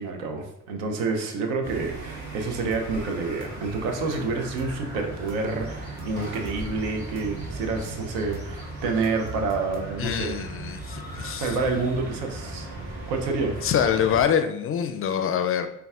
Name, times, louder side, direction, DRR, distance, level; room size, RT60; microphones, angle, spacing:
voice 1, 0.0-10.4 11.4-12.7 13.1-13.6, right 4 dB, 80° right, 4 dB, 0.7 m, -28 dB
sound 1, 1.6-14.2, right 1 dB, 55° right, 1.3 m, -37 dB
sound 2, 2.7-3.0 3.4-4.8 5.3-6.7 7.2-8.6 9.0-10.2, right 5 dB, 35° right, 0.5 m, -42 dB
voice 2, 10.0-11.6 13.6-15.7, left 8 dB, 40° left, 8 dB, 0.4 m, -25 dB
5.1 x 2.3 x 2.4 m, 0.79 s
hypercardioid pair, 55°, 35 cm